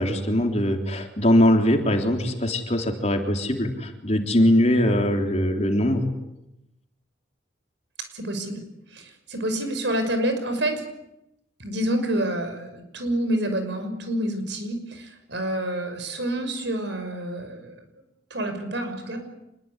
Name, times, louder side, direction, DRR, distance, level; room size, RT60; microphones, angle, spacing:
voice 1, 0.0-6.0, left 1 dB, 35° left, 4 dB, 3.5 m, -21 dB
voice 2, 8.1-8.6 8.9-10.8 11.6-17.8 18.3-19.2, right 1 dB, 65° right, 7 dB, 6.1 m, -28 dB
26.5 x 22.0 x 9.8 m, 0.88 s
head